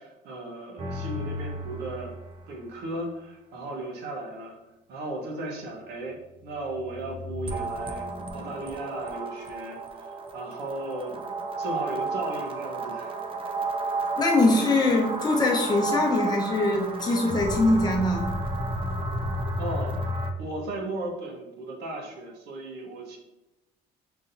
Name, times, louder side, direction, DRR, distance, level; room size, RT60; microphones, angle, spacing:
voice 1, 0.0-2.1 2.5-4.6 4.9-6.2 6.4-13.2 19.6-19.9 20.4-23.2, right 2 dB, 75° right, 0 dB, 1.0 m, -36 dB
sound 1, 0.8-2.5 6.4-20.3, right 2 dB, 30° right, 0.5 m, -32 dB
voice 2, 14.2-18.3, left 2 dB, 25° left, -1 dB, 0.9 m, -23 dB
5.9 x 2.7 x 2.6 m, 0.98 s
cardioid pair, 110°, 17 cm